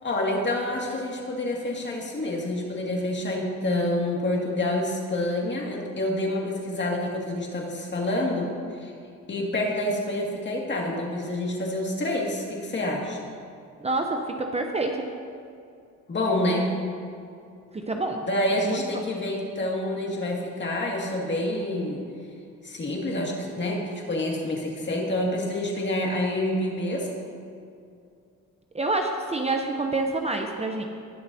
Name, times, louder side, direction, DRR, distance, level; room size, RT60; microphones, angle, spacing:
voice 1, 0.0-8.9 9.3-13.2 16.1-16.7 18.3-22.0 22.6-27.1, left 1 dB, 35° left, -2 dB, 2.2 m, -27 dB
voice 2, 13.8-15.1 17.7-18.2 18.6-18.8 28.7-30.8, right 2 dB, 20° right, 3 dB, 0.7 m, -27 dB
19.5 x 6.7 x 2.8 m, 2.4 s
cardioid pair, 90°, 30 cm